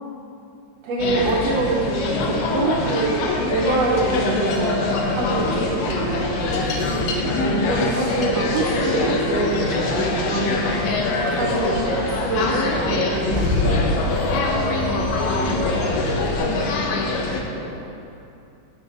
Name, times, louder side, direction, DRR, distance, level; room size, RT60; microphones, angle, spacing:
voice 1, 0.8-6.5 7.0-10.9 11.2-14.4, right 3 dB, 85° right, -5 dB, 1.4 m, -25 dB
sound 1, 1.0-17.4, left 3 dB, 75° left, 1.8 m, -24 dB
sound 2, 4.7-17.6, right 3 dB, 65° right, 1.7 m, -38 dB
Car / Engine starting / Idling, 12.9-16.4, left 1 dB, 15° right, 0.6 m, -27 dB
voice 2, 15.4-18.3, right 1 dB, 40° right, -9 dB, 1.0 m, -38 dB
8.2 x 6.6 x 4.2 m, 2.5 s
omnidirectional pair, 3.9 m